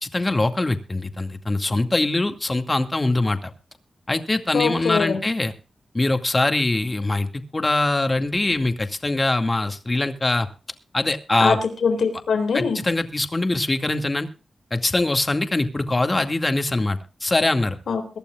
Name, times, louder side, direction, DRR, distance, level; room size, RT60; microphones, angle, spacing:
voice 1, 0.0-3.5 4.1-5.5 5.9-10.5 10.9-11.6 12.5-14.3 14.7-17.8, left 2 dB, 30° left, 7 dB, 2.2 m, -23 dB
voice 2, 4.5-5.2 11.4-11.5 11.8-12.8 17.9-18.2, left 5 dB, 85° left, 7 dB, 3.7 m, -22 dB
23.0 x 12.0 x 2.5 m, 0.34 s
cardioid pair, 65°, 0 cm